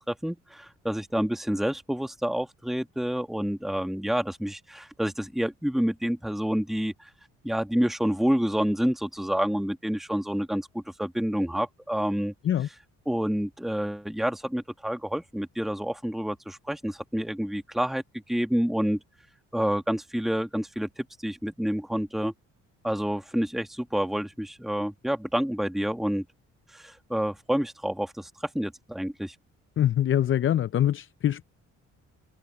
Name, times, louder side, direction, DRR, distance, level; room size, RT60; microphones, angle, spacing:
voice 1, 0.1-7.1 7.4-12.3 13.1-19.0 19.5-22.3 22.8-26.2 26.7-29.4, equal, ahead, 1.8 m, -28 dB
voice 2, 29.8-31.4, left 11 dB, 40° left, 0.5 m, -24 dB
cardioid pair, 90°, 30 cm